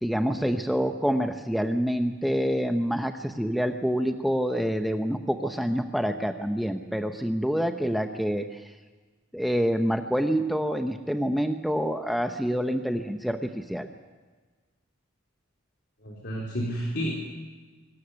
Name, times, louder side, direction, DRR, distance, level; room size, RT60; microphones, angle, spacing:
voice 1, 0.0-8.7 9.3-13.9, equal, ahead, 6 dB, 0.7 m, -27 dB
voice 2, 16.0-17.1, equal, 55° left, -2 dB, 3.8 m, -30 dB
24.0 x 13.5 x 9.6 m, 1.4 s
head